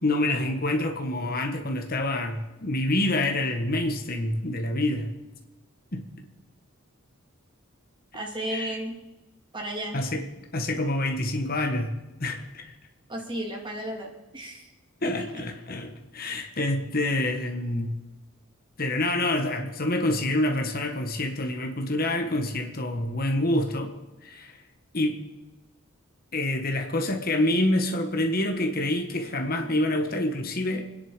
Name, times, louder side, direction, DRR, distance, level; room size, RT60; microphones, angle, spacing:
voice 1, 0.0-5.1 5.9-6.0 8.5-8.8 9.9-10.2 10.5-12.7 15.0-17.9 18.8-23.9 24.2-24.6 24.9-25.2 26.3-30.9, left 1 dB, 45° left, 4 dB, 1.6 m, -27 dB
voice 2, 8.1-9.0 9.5-10.0 13.1-14.7 15.0-15.1, right 1 dB, 20° right, 0 dB, 3.1 m, -33 dB
26.0 x 10.5 x 5.2 m, 1.1 s
head